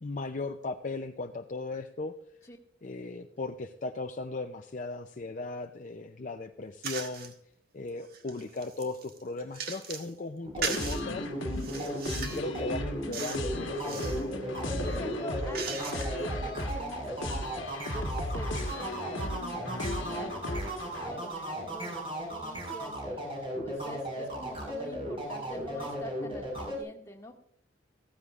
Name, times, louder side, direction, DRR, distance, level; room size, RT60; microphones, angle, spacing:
voice 1, 0.0-2.1 2.8-7.3 7.7-11.3 11.7-11.9 12.3-14.3, left 3 dB, 40° left, 6 dB, 0.5 m, -37 dB
sound 1, 6.8-7.3 7.9-10.1 10.6-11.0 11.5-12.5 13.1-13.5 13.8-14.2 14.8-16.3, right 5 dB, 50° right, 1.4 m, -38 dB
sound 2, 10.4-26.8, right 1 dB, 30° right, 5.2 m, -36 dB
sound 3, 10.8-21.1, left 1 dB, 80° left, 1.4 m, -36 dB
voice 2, 11.4-11.8 14.8-17.5 17.9-23.2 23.6-27.3, left 1 dB, 15° left, 0 dB, 1.9 m, -45 dB
15.5 x 14.5 x 2.5 m, 0.70 s
head